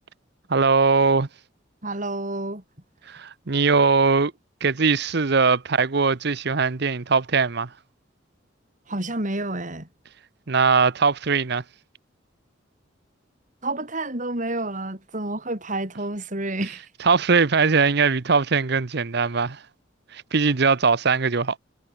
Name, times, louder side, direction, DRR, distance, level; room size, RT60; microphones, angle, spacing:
voice 1, 0.5-1.3 3.1-4.3 4.6-7.7 10.5-11.6 17.0-19.6 20.1-21.6, right 4 dB, 60° right, 0.9 m, -20 dB
voice 2, 1.8-2.6 8.9-9.9 13.6-16.8, right 2 dB, 40° right, 4.5 m, -29 dB
head